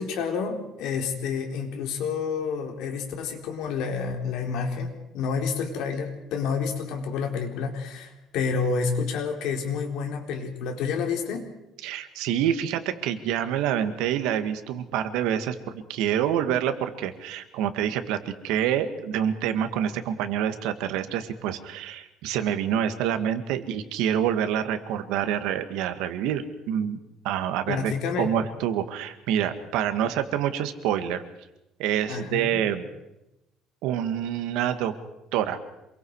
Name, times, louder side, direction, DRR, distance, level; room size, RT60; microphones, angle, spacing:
voice 1, 0.0-11.5 27.7-28.3 32.1-32.6, left 5 dB, 70° left, 3 dB, 4.1 m, -29 dB
voice 2, 11.8-27.0 27.2-27.9 28.2-31.2 31.8-32.9 33.8-34.9 35.3-35.6, right 10 dB, 85° right, 9 dB, 2.0 m, -27 dB
27.0 x 23.0 x 4.9 m, 0.91 s
cardioid pair, 155°, 0 cm